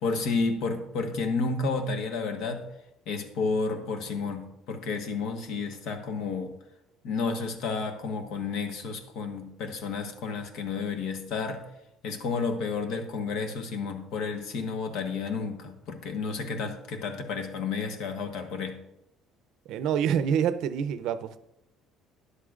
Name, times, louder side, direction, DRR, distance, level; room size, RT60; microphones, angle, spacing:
voice 1, 0.0-2.7 3.1-6.5 7.0-11.6 12.0-18.8, left 4 dB, 70° left, 6 dB, 1.2 m, -31 dB
voice 2, 19.7-21.4, right 8 dB, 70° right, 12 dB, 0.5 m, -26 dB
12.5 x 10.0 x 2.5 m, 0.88 s
cardioid pair, 150°, 0 cm